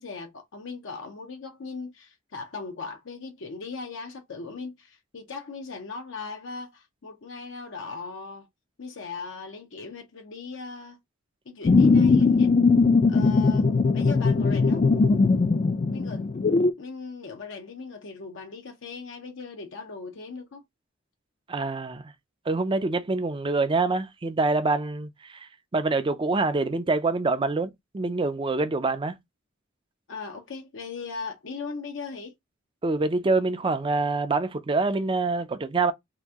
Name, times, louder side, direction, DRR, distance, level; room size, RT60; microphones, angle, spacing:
voice 1, 0.0-8.5 8.8-11.0 11.5-12.5 13.1-14.9 15.9-16.3 16.8-20.6 30.1-32.3, left 4 dB, 70° left, 0.6 m, -38 dB
sound 1, 11.6-16.7, left 4 dB, 35° left, 0.4 m, -20 dB
voice 2, 21.5-22.1 22.5-29.2 32.8-35.9, right 3 dB, 25° right, 0.4 m, -26 dB
2.9 x 2.5 x 3.5 m
head